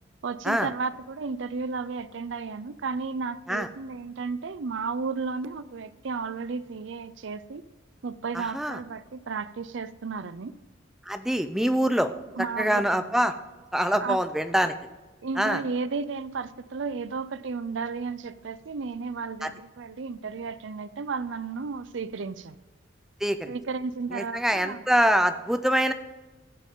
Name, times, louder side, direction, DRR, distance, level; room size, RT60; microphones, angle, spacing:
voice 1, 0.2-7.6 8.0-10.6 12.4-12.8 14.0-14.2 15.2-22.6 23.5-24.8, right 4 dB, 70° right, 15 dB, 0.5 m, -33 dB
voice 2, 8.3-8.8 11.1-12.1 12.6-13.3 13.7-14.7 15.4-15.6 19.4-19.5 23.2-23.5 24.1-25.9, equal, ahead, 9 dB, 0.5 m, -24 dB
16.0 x 7.6 x 3.7 m, 1.2 s
head